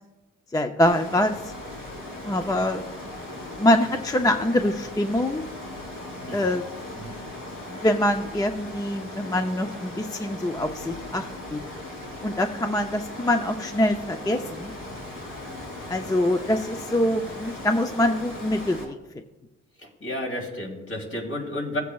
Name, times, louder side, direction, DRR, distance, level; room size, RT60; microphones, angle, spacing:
voice 1, 0.5-1.5 2.2-2.8 3.4-5.4 6.3-6.7 7.7-11.6 12.2-14.7 15.9-19.0, left 1 dB, 10° left, 6 dB, 0.5 m, -24 dB
Water, 0.8-18.8, left 1 dB, 90° left, 3.3 m, -38 dB
voice 2, 6.2-6.5 6.9-7.2 19.8-21.8, left 1 dB, 45° left, 0 dB, 3.1 m, -32 dB
17.0 x 8.1 x 2.4 m, 1.1 s
cardioid pair, 90°, 30 cm